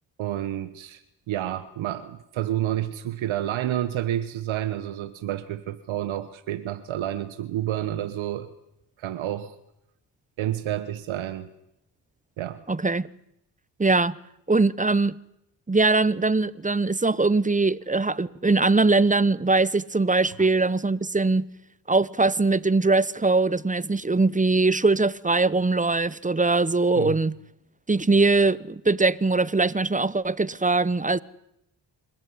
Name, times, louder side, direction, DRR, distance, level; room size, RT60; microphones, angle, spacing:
voice 1, 0.2-8.5 9.0-9.5 10.4-11.5 12.4-12.6 20.4-20.5 26.9-27.2, right 12 dB, 85° right, 1.2 m, -29 dB
voice 2, 12.7-13.1 13.8-14.2 14.5-15.2 15.7-21.5 21.9-27.3 27.9-31.2, right 3 dB, 15° right, 0.9 m, -21 dB
27.0 x 14.5 x 9.6 m
supercardioid pair, 55°, 46 cm